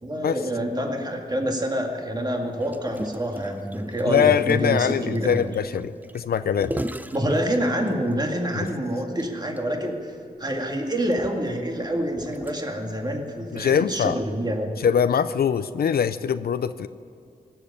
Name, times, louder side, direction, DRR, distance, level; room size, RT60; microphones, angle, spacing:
voice 1, 0.0-5.5 7.1-10.1 10.4-14.7, equal, 25° right, 2 dB, 2.1 m, -27 dB
Gurgling, 2.6-8.1 8.7-8.8 9.0-9.2 9.6-9.7 10.4-12.9 13.6-13.7, right 1 dB, 10° right, 0.6 m, -37 dB
voice 2, 4.1-6.8 8.5-8.7 13.5-14.2 14.8-16.9, left 8 dB, 80° left, 13 dB, 0.5 m, -23 dB
17.0 x 7.8 x 9.9 m, 2.3 s
cardioid pair, 60°, 16 cm